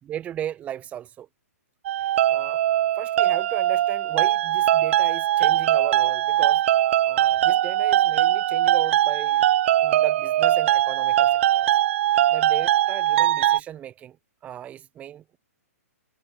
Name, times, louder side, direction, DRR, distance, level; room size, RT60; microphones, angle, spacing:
voice 1, 0.0-1.3 2.0-2.6 3.0-6.6 7.1-9.4 9.8-11.7 12.3-14.2 14.4-15.4, right 10 dB, 15° right, 4.5 m, -36 dB
sound 1, 1.8-13.6, right 12 dB, 50° right, 1.9 m, -21 dB
hypercardioid pair, 155°, 8 cm